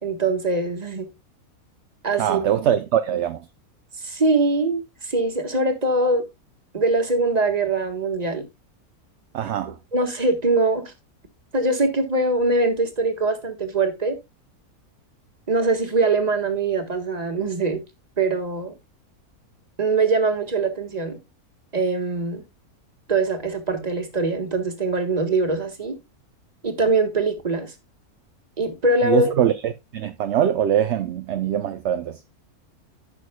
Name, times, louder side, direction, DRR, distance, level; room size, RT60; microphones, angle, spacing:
voice 1, 0.0-1.1 2.0-2.4 4.0-6.2 6.7-8.5 9.9-10.9 11.5-14.2 15.5-17.8 18.2-18.7 19.8-21.2 21.7-22.4 23.1-26.0 26.6-27.7 28.6-29.3, right 3 dB, 25° right, 1.5 m, -22 dB
voice 2, 2.2-3.5 9.3-9.8 29.0-32.2, right 10 dB, 60° right, 0.8 m, -22 dB
15.0 x 6.3 x 2.2 m
omnidirectional pair, 1.6 m